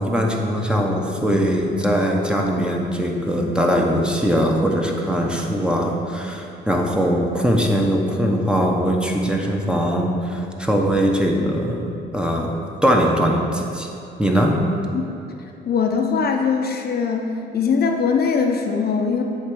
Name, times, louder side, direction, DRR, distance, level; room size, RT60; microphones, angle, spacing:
voice 1, 0.0-13.9 14.2-14.6, equal, 5° right, 0 dB, 0.9 m, -21 dB
voice 2, 15.7-19.2, left 5 dB, 50° left, 3 dB, 0.7 m, -21 dB
8.1 x 3.3 x 6.2 m, 2.7 s
cardioid pair, 90°, 20 cm